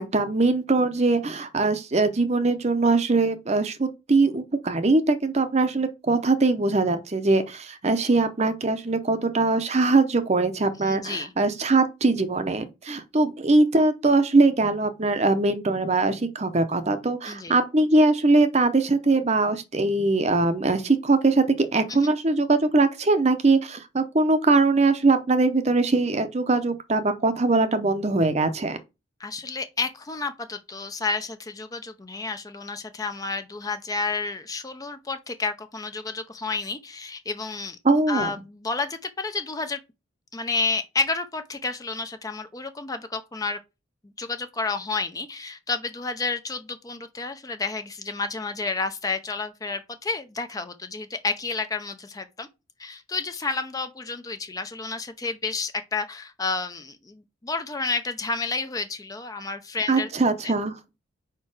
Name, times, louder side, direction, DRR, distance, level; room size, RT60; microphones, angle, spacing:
voice 1, 0.0-28.8 37.8-38.3 59.9-60.7, right 3 dB, 35° right, 0.7 m, -22 dB
voice 2, 10.8-11.3 17.2-17.5 21.9-22.1 29.2-37.8 38.1-39.8 40.3-43.6 44.2-52.5 52.8-60.1 60.4-60.5, left 4 dB, 20° left, 0.5 m, -30 dB
4.7 x 4.4 x 4.8 m
head